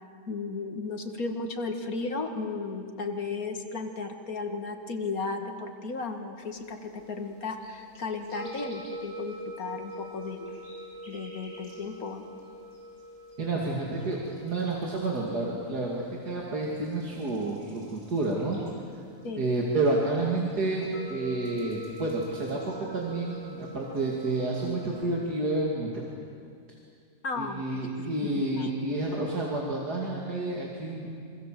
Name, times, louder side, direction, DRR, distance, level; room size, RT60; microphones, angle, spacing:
voice 1, 0.3-10.6 11.1-12.2 19.2-19.5 27.2-28.7, left 4 dB, 60° left, 4 dB, 2.4 m, -35 dB
sound 1, 6.4-25.2, equal, 50° right, 6.7 m, -45 dB
voice 2, 13.4-18.6 19.4-26.0 27.4-31.1, right 2 dB, 75° right, -3 dB, 3.2 m, -30 dB
26.5 x 24.5 x 7.7 m, 2.3 s
omnidirectional pair, 1.7 m